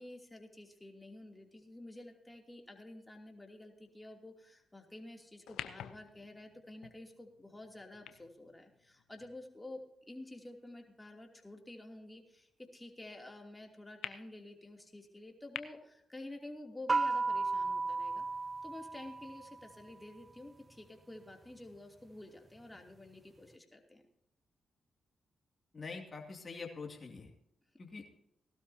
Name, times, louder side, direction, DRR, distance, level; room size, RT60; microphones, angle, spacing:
voice 1, 0.0-18.2 18.6-24.0, left 1 dB, 15° left, 2 dB, 2.9 m, -50 dB
sound 1, 5.4-9.9 10.6-10.7 14.0-14.1 15.5-15.6, left 11 dB, 85° left, 0.7 m, -48 dB
sound 2, 16.9-19.6, right 3 dB, 35° right, 0.5 m, -34 dB
voice 2, 25.7-27.3 27.8-28.1, left 4 dB, 40° left, 1 dB, 2.6 m, -45 dB
18.5 x 12.5 x 2.8 m, 0.81 s
supercardioid pair, 60°, 0 cm